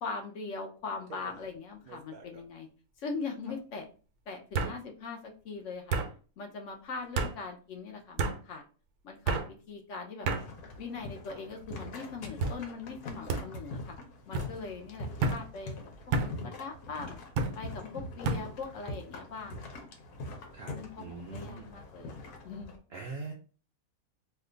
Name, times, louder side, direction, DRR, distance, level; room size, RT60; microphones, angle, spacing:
voice 1, 0.0-2.7 3.0-3.9 4.3-6.0 6.4-8.6 9.0-9.4 9.7-10.3 10.7-13.9 14.3-15.8 16.2-17.2 17.6-19.8 20.7-22.2 22.4-22.8, left 4 dB, 70° left, 2 dB, 0.8 m, -41 dB
sound 1, 1.1-1.5 1.9-2.4 3.5-3.6 4.5-4.8 5.9-6.1 7.2-7.3 8.2-8.4 9.3-9.5 10.3-10.4 11.2-11.6 12.4-12.6 13.3-13.4 14.3-14.5 15.2-15.4 16.1-16.3 17.4-17.6 18.2-18.4, right 3 dB, 85° right, 1.1 m, -30 dB
sound 2, 10.4-22.8, left 2 dB, 85° left, 1.2 m, -44 dB
voice 2, 20.5-21.7 22.9-23.3, right 4 dB, 70° right, 1 dB, 0.6 m, -42 dB
2.8 x 2.2 x 3.7 m, 0.38 s
omnidirectional pair, 1.5 m